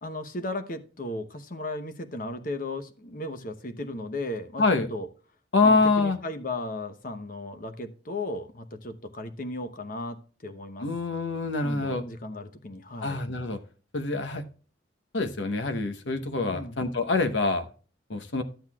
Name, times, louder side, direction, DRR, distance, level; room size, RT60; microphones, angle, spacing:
voice 1, 0.0-5.1 5.6-10.9 11.6-13.2 16.5-16.8, left 2 dB, 45° left, 8 dB, 0.9 m, -36 dB
voice 2, 4.6-4.9 5.5-6.2 10.8-12.0 13.0-13.6 13.9-14.4 15.1-17.6 18.1-18.4, left 3 dB, 75° left, 8 dB, 1.0 m, -25 dB
12.5 x 7.9 x 2.3 m, 0.37 s
head